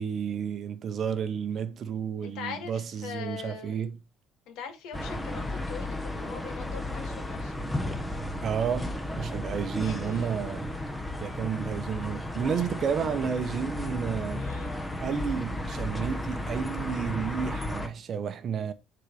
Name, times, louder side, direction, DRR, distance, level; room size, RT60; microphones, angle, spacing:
voice 1, 0.0-4.0 8.4-8.9 9.2-10.7 11.2-14.5 15.0-18.7, right 7 dB, 35° right, 0.8 m, -31 dB
voice 2, 2.2-3.8 4.5-7.6 9.8-10.5 12.3-13.3 14.4-14.8, left 7 dB, 70° left, 2.4 m, -42 dB
sound 1, 4.9-17.9, left 1 dB, 5° left, 0.9 m, -34 dB
10.0 x 4.0 x 4.8 m
cardioid pair, 160°, 0 cm